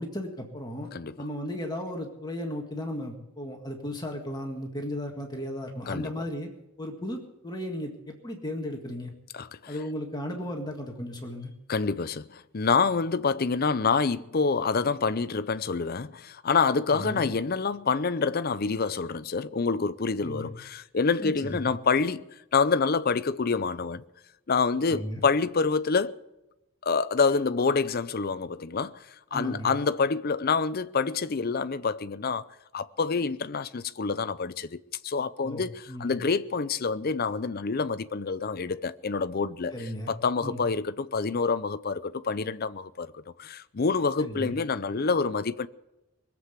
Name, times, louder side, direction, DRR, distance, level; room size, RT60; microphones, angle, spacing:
voice 1, 0.0-0.9 1.2-6.5 6.8-9.1 9.7-11.5 16.9-17.3 20.2-20.5 21.2-21.7 24.9-25.2 29.3-29.8 35.4-35.6 35.9-36.2 39.7-40.1 40.4-40.6 44.2-44.5, left 1 dB, 20° left, 1.7 m, -35 dB
voice 2, 5.9-6.2 9.3-9.7 11.7-24.0 24.5-26.2 26.8-29.0 29.3-32.4 32.7-39.7 40.1-43.1 43.4-45.7, left 4 dB, 45° left, 0.6 m, -27 dB
21.0 x 7.7 x 8.2 m
head